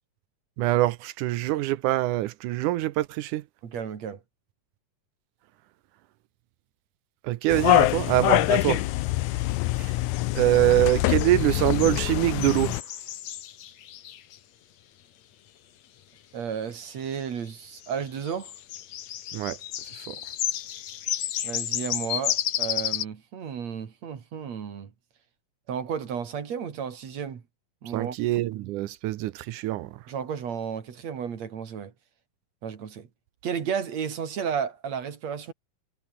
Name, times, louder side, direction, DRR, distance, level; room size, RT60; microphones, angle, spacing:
voice 1, 0.6-3.4 7.2-8.8 9.8-9.9 10.4-12.7 19.3-19.6 20.1-20.2 27.9-30.0, right 15 dB, 75° right, 2.2 m, -24 dB
voice 2, 3.6-4.2 16.3-18.5 21.4-24.9 25.7-27.4 27.8-28.2 30.1-31.9 32.6-33.1 33.4-35.5, right 7 dB, 55° right, 3.5 m, -33 dB
sound 1, 7.5-12.8, left 19 dB, 80° left, 1.8 m, -24 dB
sound 2, 10.1-14.4 17.8-17.9 18.3-23.0, left 11 dB, 60° left, 2.3 m, -32 dB
omnidirectional pair, 3.8 m